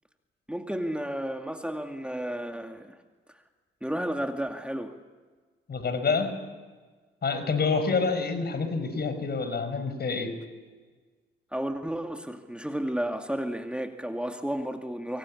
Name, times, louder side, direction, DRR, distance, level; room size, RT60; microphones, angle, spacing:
voice 1, 0.5-3.0 3.8-5.0 11.5-15.2, right 1 dB, 5° right, 4 dB, 2.4 m, -32 dB
voice 2, 5.7-6.3 7.2-10.4, left 4 dB, 50° left, 10 dB, 5.1 m, -27 dB
25.0 x 24.0 x 8.7 m, 1.4 s
supercardioid pair, 55°, 21 cm